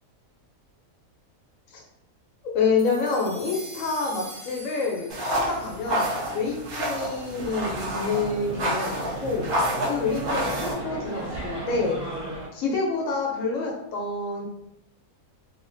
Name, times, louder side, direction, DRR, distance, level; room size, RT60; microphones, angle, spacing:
voice 1, 2.4-9.5 9.8-12.0 12.5-14.5, left 4 dB, 65° left, 0 dB, 1.0 m, -28 dB
sound 1, 2.8-7.3, right 1 dB, 25° left, 0.5 m, -44 dB
sound 2, 5.1-10.7, equal, 90° right, 1.3 m, -29 dB
sound 3, 7.5-12.5, right 2 dB, 70° right, 1.4 m, -35 dB
3.1 x 2.5 x 2.5 m, 0.80 s
omnidirectional pair, 1.5 m